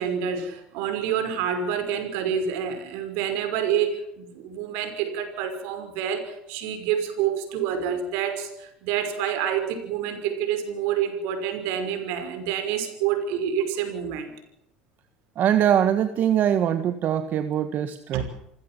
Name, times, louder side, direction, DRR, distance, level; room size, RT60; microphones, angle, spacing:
voice 1, 0.0-14.3 18.1-18.2, right 8 dB, 75° right, 7 dB, 5.6 m, -28 dB
voice 2, 15.3-18.2, right 10 dB, 50° right, 10 dB, 1.6 m, -22 dB
27.0 x 16.0 x 7.6 m, 0.82 s
supercardioid pair, 90°, 4 cm